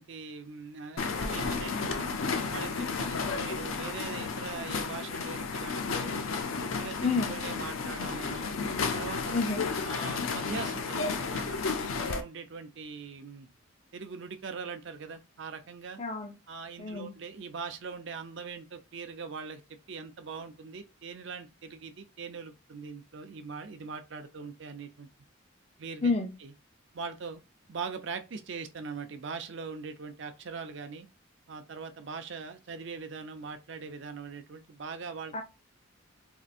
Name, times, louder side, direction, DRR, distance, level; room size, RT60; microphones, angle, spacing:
voice 1, 0.0-2.2 2.5-6.2 6.6-8.5 8.9-9.4 9.8-13.5 13.9-16.0 16.5-19.6 19.9-25.1 25.8-26.1 26.4-26.5 26.9-27.4 27.7-31.1 31.5-35.3, right 5 dB, 60° right, 0.5 m, -41 dB
sound 1, 1.0-12.2, left 4 dB, 80° left, 0.5 m, -32 dB
voice 2, 7.0-7.3 9.3-9.6 16.0-16.3 16.8-17.1 26.0-26.3 35.3-35.4, left 4 dB, 30° left, 0.5 m, -29 dB
4.4 x 2.5 x 2.5 m
head